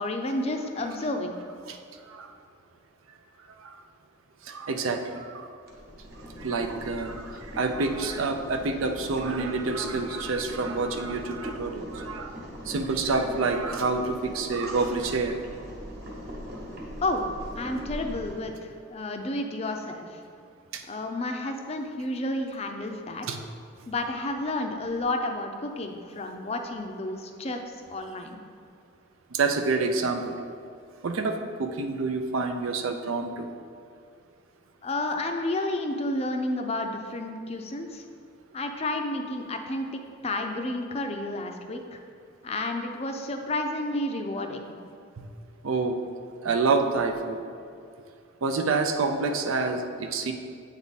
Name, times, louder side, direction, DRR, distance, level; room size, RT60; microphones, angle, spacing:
voice 1, 0.0-1.3 17.0-17.3 17.5-18.5 18.9-20.1 20.9-23.3 23.9-27.6 27.9-28.4 34.8-38.0 38.5-39.9 40.2-42.0 42.4-44.7, left 2 dB, 30° left, 5 dB, 0.4 m, -31 dB
voice 2, 4.5-5.5 6.4-12.3 12.7-15.4 23.3-23.4 29.3-30.4 31.0-33.5 45.6-46.0 46.4-47.4 48.4-50.3, right 3 dB, 85° right, 6 dB, 0.5 m, -27 dB
Boiling, 5.6-18.4, equal, 50° right, 1.2 m, -40 dB
8.1 x 3.5 x 4.0 m, 2.3 s
head